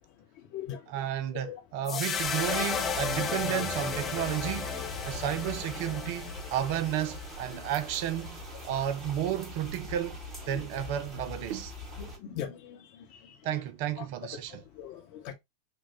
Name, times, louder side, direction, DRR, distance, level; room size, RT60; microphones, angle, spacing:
voice 1, 0.9-4.7 5.1-10.2 10.5-11.7 13.4-14.6, right 11 dB, 45° right, 0.4 m, -32 dB
sound 1, 1.9-8.2, left 6 dB, 25° left, 0.5 m, -34 dB
sound 2, 2.1-12.2, left 1 dB, 20° right, 1.3 m, -42 dB
voice 2, 12.0-12.8 14.5-15.3, left 9 dB, 45° left, 0.9 m, -39 dB
4.5 x 2.3 x 2.8 m
figure-of-eight pair, 90°, 0 cm